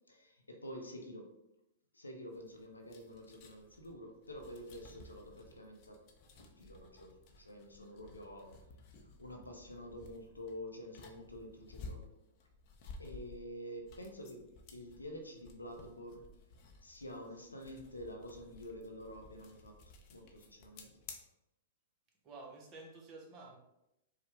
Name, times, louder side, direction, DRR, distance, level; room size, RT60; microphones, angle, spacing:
voice 1, 0.1-1.3 1.9-6.0 6.3-7.1 7.4-8.6 9.2-12.0 12.8-16.3 16.8-19.8 20.1-20.9, equal, 90° left, 3 dB, 0.7 m, -48 dB
sound 1, 2.3-21.1, left 3 dB, 40° left, 0.7 m, -55 dB
voice 2, 22.2-23.6, right 3 dB, 30° right, -1 dB, 1.1 m, -51 dB
4.7 x 2.3 x 3.4 m, 0.87 s
figure-of-eight pair, 105°, 0 cm